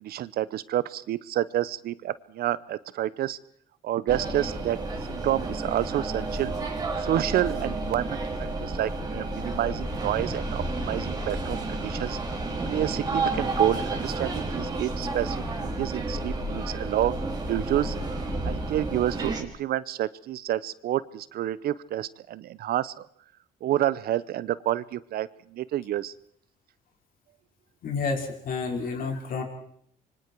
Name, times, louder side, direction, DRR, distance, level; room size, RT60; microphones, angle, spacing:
voice 1, 0.0-3.4 3.8-4.8 5.1-6.5 7.0-12.2 12.7-18.0 18.4-23.1 23.6-26.1, right 12 dB, 65° right, 18 dB, 0.8 m, -29 dB
sound 1, 4.1-19.4, right 2 dB, 25° right, 3.9 m, -31 dB
voice 2, 27.8-29.4, left 4 dB, 55° left, 3 dB, 5.1 m, -30 dB
26.5 x 24.0 x 4.7 m, 0.63 s
cardioid pair, 110°, 17 cm